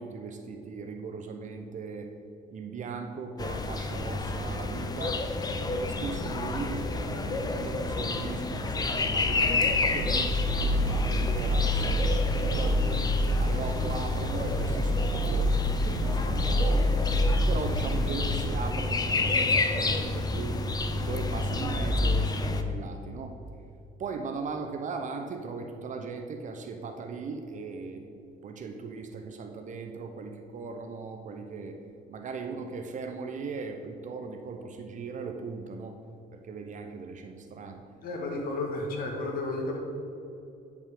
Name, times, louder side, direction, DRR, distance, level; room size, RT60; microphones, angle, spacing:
voice 1, 0.0-2.1 2.5-5.2 5.6-10.3 10.5-13.1 13.4-17.0 17.5-20.6 20.9-23.4 24.0-28.0 28.4-31.8 32.1-36.0 36.3-37.8, right 4 dB, 45° right, 5 dB, 0.7 m, -38 dB
sound 1, 3.4-22.6, left 3 dB, 25° left, 0.6 m, -29 dB
sound 2, 9.6-18.5, equal, 80° right, 0.9 m, -28 dB
voice 2, 38.0-39.8, left 2 dB, 60° left, 1 dB, 1.6 m, -32 dB
9.2 x 5.2 x 5.0 m, 2.8 s
cardioid pair, 110°, 17 cm